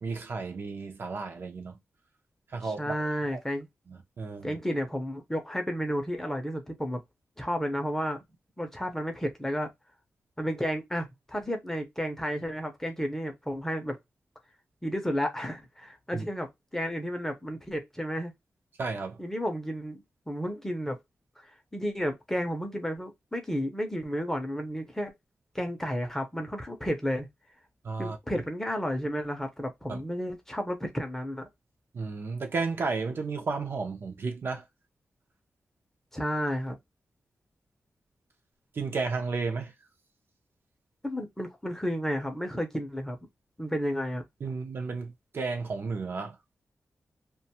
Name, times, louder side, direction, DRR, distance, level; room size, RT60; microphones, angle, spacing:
voice 1, 0.0-1.8 2.5-2.9 3.3-3.4 3.9-4.6 16.1-16.2 18.8-19.2 27.8-28.2 29.9-30.0 31.9-34.6 38.7-39.7 44.4-46.4, right 4 dB, 55° right, 0.5 m, -33 dB
voice 2, 2.8-3.7 4.4-7.0 7.4-8.2 8.6-9.7 10.4-14.0 14.8-18.3 19.2-21.0 21.4-21.5 21.7-25.1 25.5-27.3 28.0-31.5 36.1-36.8 41.0-43.2 43.6-44.2, equal, 10° left, 0.6 m, -32 dB
2.5 x 2.2 x 2.7 m
wide cardioid pair, 150°, 5 cm